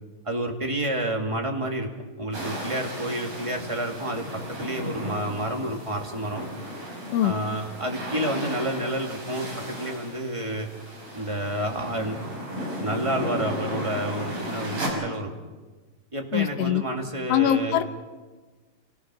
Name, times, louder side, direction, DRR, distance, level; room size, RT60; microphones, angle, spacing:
voice 1, 0.2-1.9 2.2-6.5 7.2-10.7 11.1-12.2 12.8-15.3 16.1-17.8, right 1 dB, 15° right, 2 dB, 1.5 m, -29 dB
sound 1, 2.3-14.9, equal, 45° right, 6.1 m, -35 dB
voice 2, 16.3-16.8 17.3-17.8, left 11 dB, 60° left, 8 dB, 1.8 m, -22 dB
29.0 x 17.5 x 6.2 m, 1.3 s
omnidirectional pair, 3.7 m